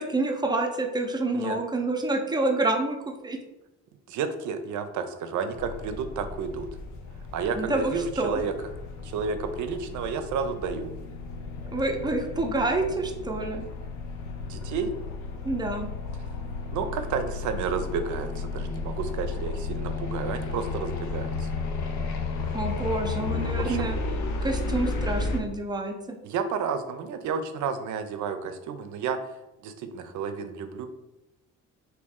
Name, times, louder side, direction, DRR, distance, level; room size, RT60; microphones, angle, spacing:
voice 1, 0.0-3.0 3.2-3.4 7.6-8.4 11.7-13.6 15.4-15.9 22.5-24.0 24.4-26.2, right 2 dB, 15° right, 2 dB, 0.5 m, -27 dB
voice 2, 4.1-6.7 7.3-8.5 9.0-10.9 14.4-14.9 16.7-21.5 23.6-23.9 26.2-30.9, right 6 dB, 75° right, 8 dB, 0.5 m, -31 dB
sound 1, 5.6-25.4, left 3 dB, 70° left, 0.6 m, -33 dB
3.1 x 2.8 x 3.5 m, 0.96 s
cardioid pair, 90°, 30 cm